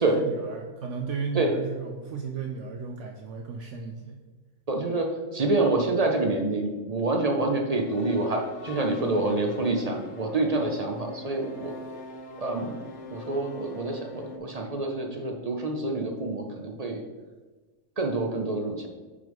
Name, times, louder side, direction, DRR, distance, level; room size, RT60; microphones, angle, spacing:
voice 1, 0.0-4.2, right 5 dB, 65° right, 3 dB, 0.8 m, -35 dB
voice 2, 4.7-11.7 12.4-12.8 13.1-17.0 18.0-18.9, right 2 dB, 50° right, 3 dB, 0.5 m, -27 dB
sound 1, 7.7-14.4, left 3 dB, 80° left, 1.3 m, -43 dB
6.1 x 4.0 x 5.1 m, 1.3 s
omnidirectional pair, 1.5 m